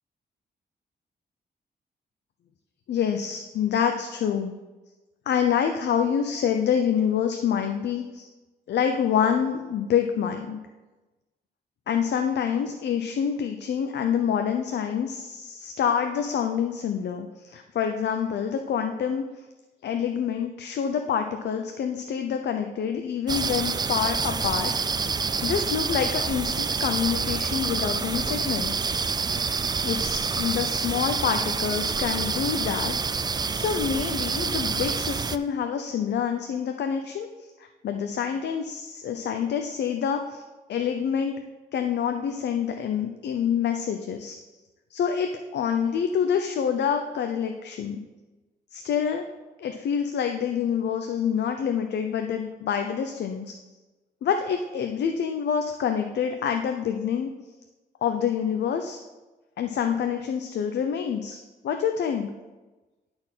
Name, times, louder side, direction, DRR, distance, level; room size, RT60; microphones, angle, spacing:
voice 1, 2.9-4.5 5.3-8.3 8.7-10.6 11.9-19.2 19.8-25.0 25.4-29.0 29.8-32.9 33.5-37.5 37.8-40.4 40.7-41.4 41.7-44.4 44.9-48.0 48.7-49.2 49.6-53.5 54.2-57.3 58.0-59.0 59.6-61.4 61.6-62.3, left 7 dB, 75° left, 5 dB, 0.6 m, -27 dB
sound 1, 23.3-35.4, right 5 dB, 25° right, 0.3 m, -27 dB
10.5 x 4.4 x 5.6 m, 1.2 s
cardioid pair, 100°, 18 cm